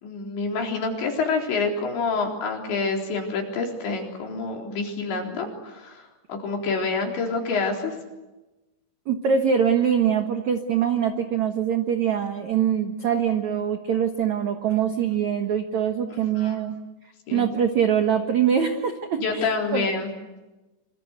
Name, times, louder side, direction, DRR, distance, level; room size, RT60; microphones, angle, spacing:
voice 1, 0.0-7.9 16.3-16.6 17.3-17.5 19.2-20.1, left 4 dB, 70° left, 2 dB, 6.2 m, -27 dB
voice 2, 9.1-16.8 17.3-19.8, right 8 dB, 70° right, 6 dB, 1.7 m, -23 dB
26.0 x 26.0 x 8.0 m, 1.1 s
omnidirectional pair, 5.5 m